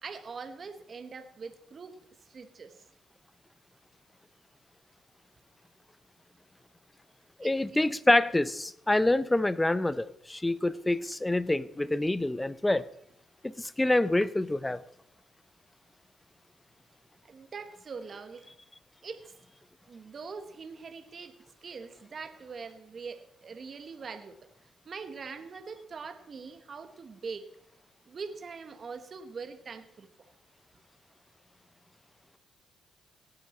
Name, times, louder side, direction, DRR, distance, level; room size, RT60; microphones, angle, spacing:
voice 1, 0.0-2.8 7.4-7.9 17.2-18.5 19.0-19.3 19.9-24.5 24.8-27.5 28.0-30.1, right 5 dB, 45° right, 8 dB, 1.2 m, -43 dB
voice 2, 7.4-12.8 13.4-14.8, left 2 dB, 10° left, 17 dB, 0.5 m, -26 dB
18.0 x 8.9 x 4.3 m, 0.74 s
cardioid pair, 90°, 0 cm